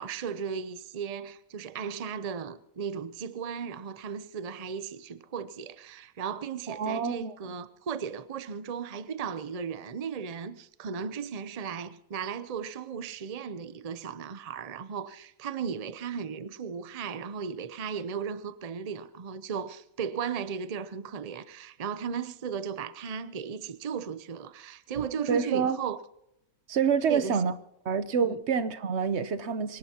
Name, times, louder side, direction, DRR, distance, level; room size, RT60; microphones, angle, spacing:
voice 1, 0.0-26.0 27.1-27.4 28.2-28.4, right 6 dB, 75° right, 0.3 m, -36 dB
voice 2, 6.7-7.3 25.3-25.8 26.7-27.5 27.8-29.8, right 6 dB, 50° right, 0.9 m, -27 dB
24.5 x 18.0 x 2.9 m
omnidirectional pair, 1.8 m